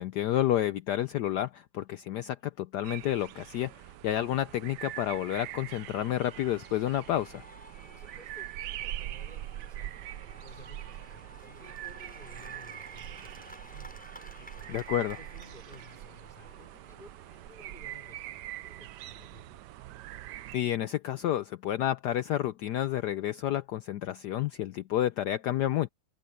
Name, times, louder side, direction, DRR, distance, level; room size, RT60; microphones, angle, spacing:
voice 1, 0.0-7.4 14.7-15.2 20.5-25.9, left 12 dB, 75° left, 1.0 m, -30 dB
sound 1, 2.8-20.6, right 14 dB, 75° right, 1.0 m, -43 dB
Cheering / Applause / Crowd, 3.9-18.6, equal, 5° left, 6.3 m, -54 dB
voice 2, 7.9-14.0 14.3-19.6, equal, 25° left, 5.6 m, -55 dB
open air
omnidirectional pair, 2.2 m